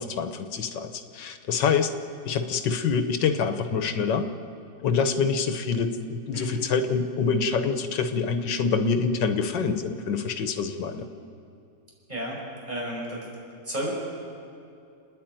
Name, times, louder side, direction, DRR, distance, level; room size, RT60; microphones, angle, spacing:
voice 1, 0.0-1.9 2.2-4.3 4.8-11.1, left 5 dB, 90° left, 8 dB, 1.7 m, -26 dB
voice 2, 12.1-13.3 13.6-13.9, right 1 dB, 25° right, -4 dB, 5.8 m, -32 dB
29.5 x 10.0 x 9.1 m, 2.6 s
omnidirectional pair, 1.9 m